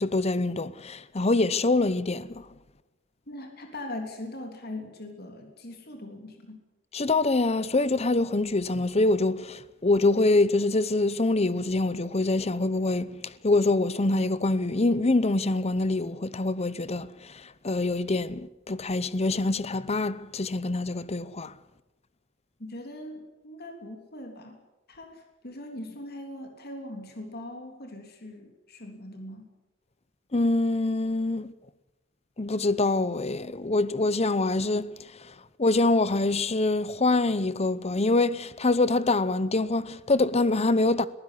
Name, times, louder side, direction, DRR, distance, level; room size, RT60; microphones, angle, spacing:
voice 1, 0.0-2.4 6.9-21.5 30.3-31.5 32.4-34.9 35.6-41.1, left 2 dB, 30° left, 0.8 m, -25 dB
voice 2, 3.3-6.6 22.6-24.6 24.9-29.5, left 1 dB, 50° left, 3.4 m, -41 dB
22.0 x 15.0 x 9.9 m
head